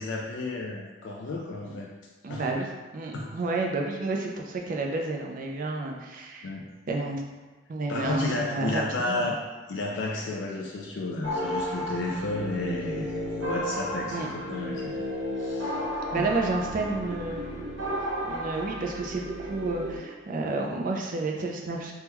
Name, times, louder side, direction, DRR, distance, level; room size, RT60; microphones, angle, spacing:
voice 1, 0.0-1.9 2.3-2.5 3.1-3.4 6.4-6.7 7.9-9.4 9.7-15.1 15.4-15.7 16.1-16.3, left 2 dB, 65° left, -2 dB, 0.4 m, -32 dB
voice 2, 2.2-6.5 6.9-7.2 7.7-9.3 14.1-14.3 16.1-17.6 18.2-21.9, right 3 dB, 45° right, 1 dB, 0.4 m, -30 dB
sound 1, 11.2-20.0, equal, 75° right, 0.8 m, -33 dB
3.4 x 2.2 x 2.9 m, 1.3 s
head